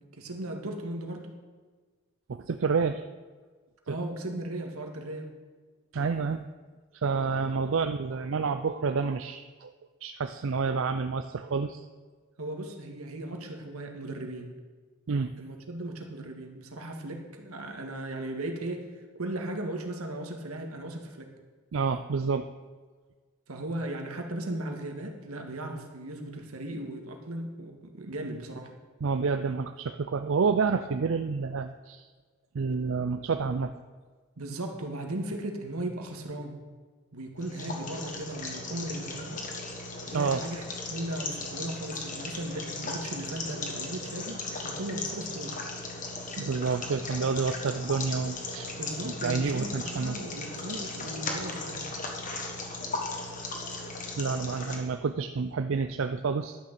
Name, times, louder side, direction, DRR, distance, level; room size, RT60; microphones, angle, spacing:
voice 1, 0.0-1.3 3.9-5.3 12.4-14.5 15.4-21.3 23.5-28.7 34.4-36.6 37.1-39.4 40.1-40.6 40.9-45.6 48.7-51.9, right 1 dB, 85° right, 3 dB, 1.7 m, -37 dB
voice 2, 2.3-3.0 3.9-4.0 5.9-6.4 6.9-9.7 10.0-11.9 15.1-15.3 21.7-22.5 29.0-32.1 32.5-33.7 40.1-40.4 46.4-48.7 49.0-50.2 54.2-56.6, right 5 dB, 60° right, 8 dB, 0.4 m, -29 dB
sound 1, 37.4-54.8, left 3 dB, 35° left, 1.6 m, -37 dB
11.5 x 6.6 x 7.4 m, 1.4 s
head